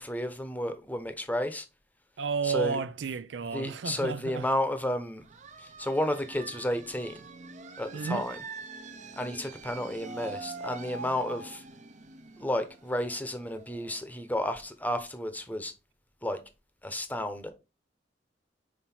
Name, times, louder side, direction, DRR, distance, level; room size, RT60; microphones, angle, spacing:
voice 1, 0.0-1.6 2.4-2.8 3.5-5.2 5.6-7.2 7.8-8.4 9.2-11.6 12.4-15.7 16.2-16.4 16.8-17.5, left 1 dB, 10° left, 0.9 m, -32 dB
voice 2, 2.2-4.5 7.9-8.3, right 5 dB, 80° right, 0.5 m, -32 dB
sound 1, 5.2-14.7, right 4 dB, 40° right, 0.7 m, -44 dB
5.8 x 4.4 x 4.3 m
head